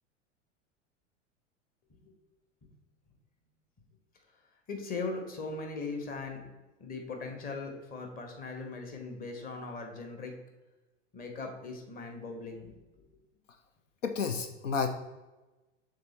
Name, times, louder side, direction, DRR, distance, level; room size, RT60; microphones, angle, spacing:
voice 1, 4.7-6.4 6.8-10.3 11.1-13.1, left 3 dB, 25° left, 4 dB, 1.2 m, -39 dB
voice 2, 14.0-14.9, left 5 dB, 75° left, 7 dB, 0.6 m, -30 dB
6.7 x 3.8 x 4.1 m, 1.1 s
figure-of-eight pair, 90°, 38 cm